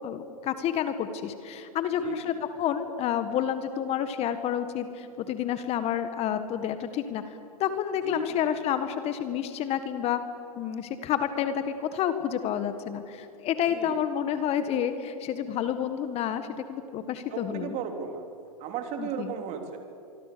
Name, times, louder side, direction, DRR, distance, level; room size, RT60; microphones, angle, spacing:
voice 1, 0.0-7.3 7.6-10.2 10.6-17.8 19.0-19.3, left 9 dB, 35° left, 10 dB, 1.7 m, -29 dB
voice 2, 2.0-2.4 8.0-8.5 13.7-14.0 17.3-18.3 18.6-19.8, right 7 dB, 40° right, 5 dB, 3.4 m, -35 dB
25.0 x 24.5 x 7.0 m, 2.6 s
hypercardioid pair, 115°, 19 cm